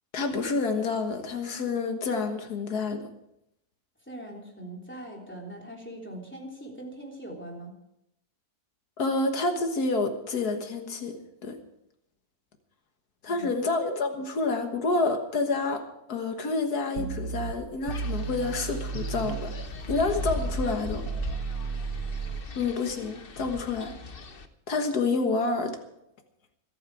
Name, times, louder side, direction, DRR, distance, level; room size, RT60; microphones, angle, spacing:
voice 1, 0.1-3.0 9.0-11.6 13.2-19.5 19.9-21.0 22.6-24.0 24.7-25.8, left 3 dB, 90° left, 5 dB, 2.0 m, -28 dB
voice 2, 4.0-7.7 13.2-13.5, right 1 dB, 5° left, -1 dB, 3.4 m, -41 dB
sound 1, 17.0-19.7 20.0-22.4, right 5 dB, 85° right, 1.6 m, -34 dB
Wind, 17.9-24.5, left 3 dB, 40° left, 1.1 m, -40 dB
26.0 x 9.1 x 4.8 m, 0.82 s
omnidirectional pair, 1.6 m